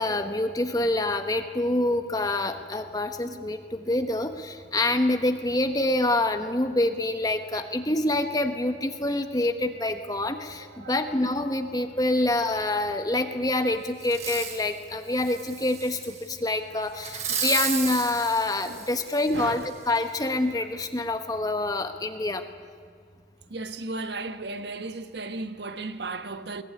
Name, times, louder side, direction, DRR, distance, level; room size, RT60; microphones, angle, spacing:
voice 1, 0.0-22.4, left 2 dB, 20° left, 1.2 m, -26 dB
Fireworks, 14.0-14.7 15.2-16.2 17.0-19.4 20.0-20.1, right 7 dB, 40° right, 3.3 m, -33 dB
voice 2, 19.3-19.7 23.5-26.6, right 3 dB, 75° right, 1.3 m, -35 dB
22.0 x 21.0 x 9.8 m
head